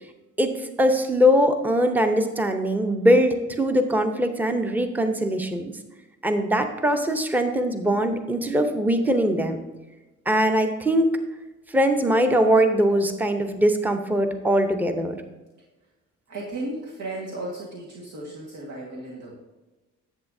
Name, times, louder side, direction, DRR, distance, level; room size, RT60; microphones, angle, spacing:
voice 1, 0.4-5.7 6.2-9.6 10.3-11.1 11.7-15.2, equal, 5° right, 6 dB, 0.7 m, -21 dB
voice 2, 16.3-19.3, right 2 dB, 80° right, -3 dB, 1.7 m, -35 dB
10.5 x 7.9 x 2.7 m, 1.1 s
cardioid pair, 90°, 30 cm